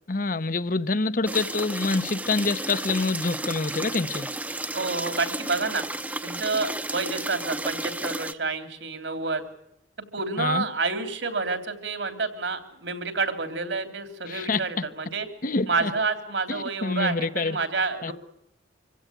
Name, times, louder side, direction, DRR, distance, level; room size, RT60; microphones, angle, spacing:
voice 1, 0.1-4.3 10.4-10.6 14.3-14.8 15.4-15.9 16.5-17.6 18.0-18.1, left 3 dB, 45° left, 0.8 m, -26 dB
sound 1, 1.3-8.3, right 2 dB, 10° right, 0.8 m, -33 dB
voice 2, 4.7-5.8 6.2-9.4 10.1-15.3 15.7-18.1, right 4 dB, 70° right, 3.2 m, -29 dB
25.5 x 16.0 x 9.0 m
head